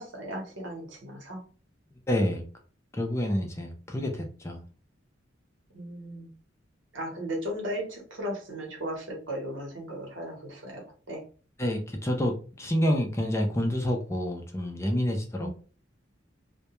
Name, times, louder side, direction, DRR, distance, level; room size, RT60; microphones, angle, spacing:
voice 1, 0.0-1.4 5.7-6.3 6.9-10.8 11.1-11.2 15.4-15.5, equal, 70° right, 0 dB, 0.9 m, -36 dB
voice 2, 2.1-2.4 2.9-4.6 11.6-15.5, equal, 15° left, 2 dB, 0.4 m, -28 dB
2.2 x 2.1 x 2.9 m, 0.39 s
head